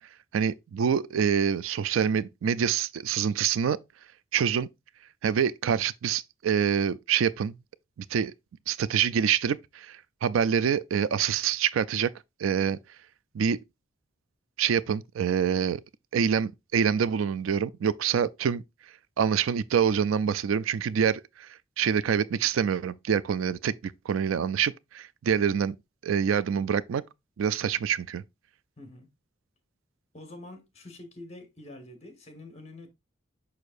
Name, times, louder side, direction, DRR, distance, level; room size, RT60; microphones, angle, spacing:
voice 1, 0.3-3.8 4.3-4.7 5.2-7.6 8.1-8.3 8.7-12.1 12.4-12.8 13.3-13.6 14.6-15.8 16.1-18.6 19.2-21.5 21.8-25.8 26.0-27.0 27.4-28.2, right 7 dB, 85° right, 0.4 m, -26 dB
voice 2, 28.8-29.1 30.1-32.9, left 2 dB, 35° left, 1.5 m, -46 dB
6.4 x 5.7 x 2.5 m
head